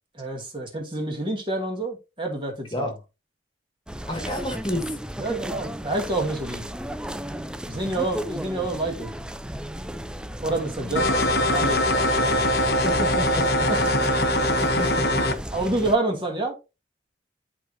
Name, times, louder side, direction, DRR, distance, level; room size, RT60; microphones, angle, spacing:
voice 1, 0.1-2.7 5.2-6.7 7.7-9.1 10.4-12.6 13.7-13.8 14.2-14.7 15.5-16.6, right 2 dB, 25° right, 2.1 m, -28 dB
sound 1, 3.9-16.0, equal, 5° right, 0.4 m, -35 dB
voice 2, 4.1-5.0 11.2-11.3 12.8-13.7 14.8-15.3, left 1 dB, 25° left, 1.7 m, -30 dB
sound 2, 11.0-15.4, left 1 dB, 60° left, 1.0 m, -22 dB
11.0 x 4.7 x 2.7 m
head